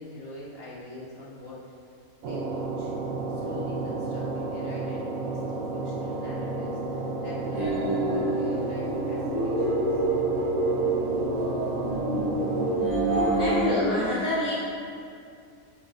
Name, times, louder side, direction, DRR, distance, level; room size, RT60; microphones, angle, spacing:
voice 1, 0.0-1.6 2.2-2.9 3.3-10.0, left 2 dB, 40° left, -8 dB, 2.1 m, -43 dB
sound 1, 2.2-12.7, right 3 dB, 65° right, 1.1 m, -32 dB
sound 2, 7.4-14.0, right 1 dB, 30° right, 1.7 m, -27 dB
voice 2, 13.3-14.5, left 1 dB, 65° left, -7 dB, 1.6 m, -28 dB
9.3 x 8.7 x 2.6 m, 2.4 s
omnidirectional pair, 1.5 m